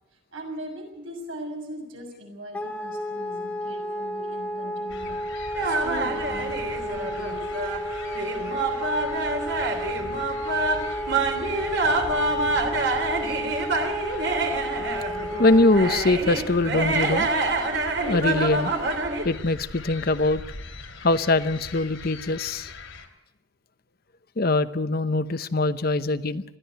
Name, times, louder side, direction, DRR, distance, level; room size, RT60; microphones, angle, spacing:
voice 1, 0.3-5.4 5.6-7.6, equal, 80° right, 2 dB, 6.7 m, -39 dB
Wind instrument woodwind instrument, 2.5-16.0, equal, 5° left, 1.9 m, -32 dB
sound 1, 4.9-23.1, left 3 dB, 70° left, 3.0 m, -42 dB
sound 2, 5.5-19.2, right 2 dB, 60° right, 3.2 m, -27 dB
voice 2, 15.4-17.3 18.0-18.7 19.2-20.4 21.0-22.7 24.4-26.4, left 2 dB, 50° left, 12 dB, 0.9 m, -22 dB
21.0 x 14.5 x 9.1 m, 0.92 s
head